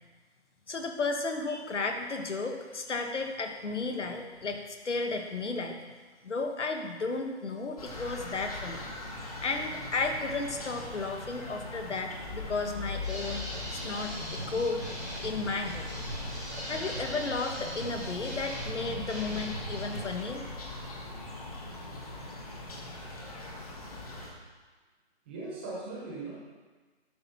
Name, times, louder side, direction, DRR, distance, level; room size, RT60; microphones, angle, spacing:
voice 1, 0.7-5.8 6.2-8.8 9.4-13.4 13.7-14.9 15.2-15.8 16.7-20.4, left 3 dB, 90° left, 4 dB, 1.5 m, -33 dB
sound 1, 7.8-24.3, left 2 dB, 35° left, 1.4 m, -40 dB
sound 2, 13.0-20.0, right 1 dB, 5° left, 0.8 m, -40 dB
voice 2, 25.2-26.3, right 3 dB, 10° right, -6 dB, 1.1 m, -40 dB
12.0 x 6.0 x 4.2 m, 1.4 s
hypercardioid pair, 170°, 34 cm